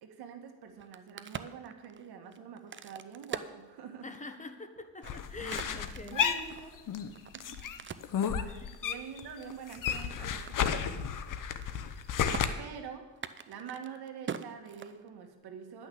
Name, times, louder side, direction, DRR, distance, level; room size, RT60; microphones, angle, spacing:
voice 1, 0.0-4.1 5.4-5.7 6.0-6.8 7.3-7.6 8.4-11.1 12.6-13.2 13.5-15.9, right 7 dB, 75° right, 5 dB, 1.7 m, -46 dB
Crack, 0.7-4.3 4.8-8.2 8.7-10.1 10.5-10.6 10.8-11.2 11.5-12.0 12.3-12.4 13.1-15.3, right 7 dB, 30° right, 0.6 m, -44 dB
voice 2, 4.0-6.5 8.6-8.8, left 3 dB, 20° left, 7 dB, 1.1 m, -45 dB
sound 1, 5.0-7.1 7.4-9.2 9.5-12.5, left 8 dB, 55° left, 0.9 m, -32 dB
10.5 x 6.2 x 8.6 m, 1.2 s
cardioid pair, 100°, 39 cm